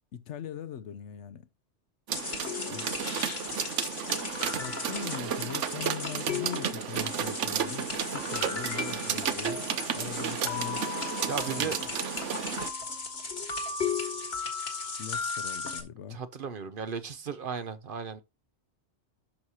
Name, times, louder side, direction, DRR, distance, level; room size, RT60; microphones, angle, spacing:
voice 1, 0.1-1.5 2.7-2.9 4.0-4.1 4.6-9.7 9.9-10.9 11.5-11.8 15.0-16.2, left 9 dB, 80° left, 1.0 m, -41 dB
sound 1, 2.1-15.8, left 5 dB, 60° left, 1.8 m, -36 dB
sound 2, 2.1-12.7, right 8 dB, 85° right, 1.1 m, -33 dB
voice 2, 11.2-11.8 16.1-18.2, right 6 dB, 55° right, 0.8 m, -35 dB
10.5 x 6.3 x 2.8 m
omnidirectional pair, 1.2 m